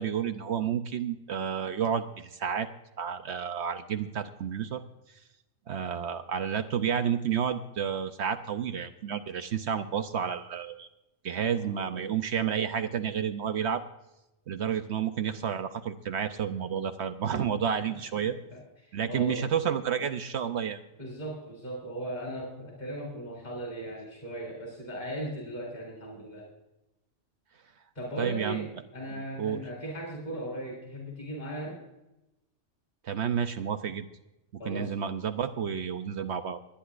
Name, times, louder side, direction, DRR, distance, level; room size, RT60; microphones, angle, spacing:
voice 1, 0.0-2.7 3.0-4.8 5.7-10.9 11.2-13.8 14.5-18.4 18.9-20.8 28.2-28.7 29.4-29.6 33.0-34.1 34.6-36.6, right 8 dB, 65° right, 8 dB, 1.0 m, -30 dB
voice 2, 11.4-12.1 17.8-18.0 18.2-19.5 21.0-26.5 28.0-31.8 34.6-34.9, right 1 dB, 35° left, -1 dB, 3.6 m, -38 dB
27.5 x 10.0 x 2.5 m, 0.92 s
omnidirectional pair, 1.3 m